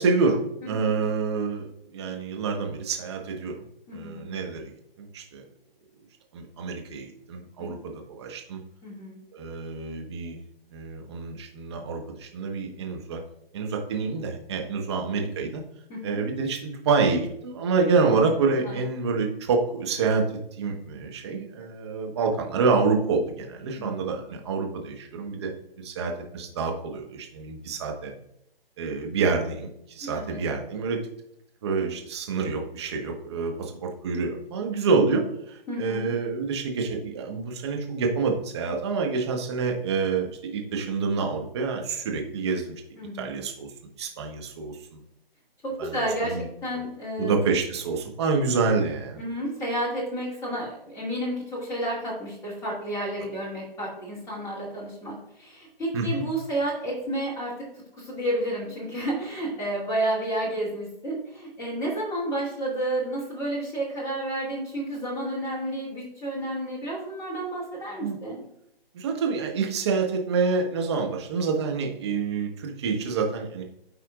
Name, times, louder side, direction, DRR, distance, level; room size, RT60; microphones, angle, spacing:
voice 1, 0.0-3.6 3.9-4.7 5.0-5.4 6.3-8.6 9.3-10.4 10.7-13.2 13.5-15.6 16.0-20.2 20.6-25.5 25.8-28.1 28.8-31.0 31.6-42.7 43.2-43.7 44.0-45.0 45.8-46.0 46.2-46.5 47.2-49.2 55.9-56.2 68.0-68.2 68.9-73.6, right 4 dB, 25° right, 2 dB, 1.1 m, -27 dB
voice 2, 0.6-1.0 3.9-4.3 7.6-7.7 8.8-9.2 15.9-16.2 18.6-18.8 23.8-24.2 30.0-30.4 35.7-36.1 43.0-43.4 45.6-47.3 49.2-57.6 58.0-68.4, right 1 dB, 10° left, -6 dB, 2.3 m, -31 dB
13.0 x 4.3 x 2.4 m, 0.76 s
figure-of-eight pair, 145°, 30 cm